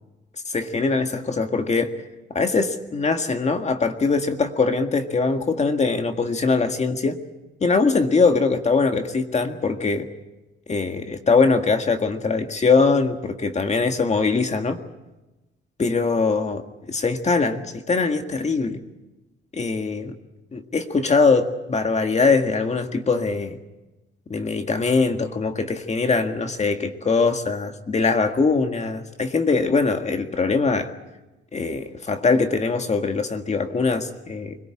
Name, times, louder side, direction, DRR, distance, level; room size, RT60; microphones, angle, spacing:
voice 1, 0.5-1.9 2.3-7.2 7.6-10.1 10.7-14.8 15.8-16.6 16.9-18.8 19.5-20.1 20.5-23.6 24.3-30.9 31.5-34.6, left 4 dB, 35° left, 6 dB, 1.8 m, -22 dB
24.5 x 18.0 x 8.7 m, 1.1 s
cardioid pair, 90°, 20 cm